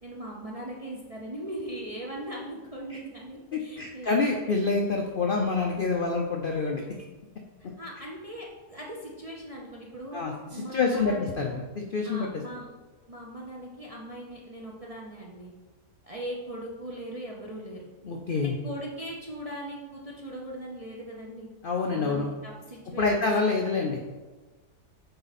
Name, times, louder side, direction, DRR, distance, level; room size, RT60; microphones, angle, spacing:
voice 1, 0.0-4.6 7.6-10.2 10.5-11.5 12.0-12.8 13.1-15.5 16.0-17.9 18.4-21.5 21.8-23.6, right 1 dB, 40° right, -3 dB, 0.5 m, -40 dB
voice 2, 3.8-6.8 10.1-12.3 18.0-18.5 21.6-22.3 23.0-24.0, left 4 dB, 75° left, 1 dB, 0.5 m, -27 dB
7.9 x 3.9 x 4.1 m, 1.3 s
omnidirectional pair, 1.7 m